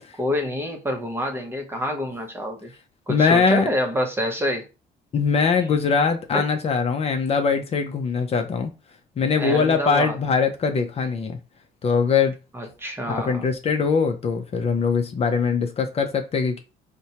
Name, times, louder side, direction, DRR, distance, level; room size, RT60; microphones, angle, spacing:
voice 1, 0.2-2.7 3.1-4.6 6.3-6.5 9.4-10.2 12.5-13.4, equal, 15° right, 0.7 m, -27 dB
voice 2, 3.1-3.7 5.1-8.7 9.2-11.4 11.8-12.3 13.1-16.6, left 5 dB, 35° left, 0.6 m, -22 dB
4.3 x 2.2 x 2.8 m
cardioid pair, 110°, 17 cm